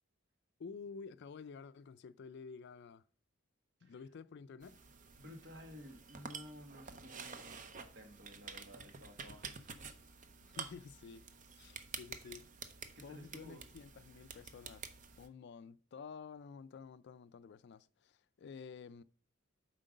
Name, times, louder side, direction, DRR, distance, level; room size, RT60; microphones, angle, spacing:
voice 1, 0.6-3.0 3.8-4.8 10.4-11.2 11.6-12.5 13.0-14.9 15.2-19.0, left 5 dB, 55° left, 0.4 m, -51 dB
sound 1, 4.6-15.3, right 5 dB, 40° right, 0.6 m, -50 dB
voice 2, 5.2-9.9 12.9-13.6, equal, 55° right, 1.6 m, -54 dB
7.6 x 4.5 x 5.1 m
head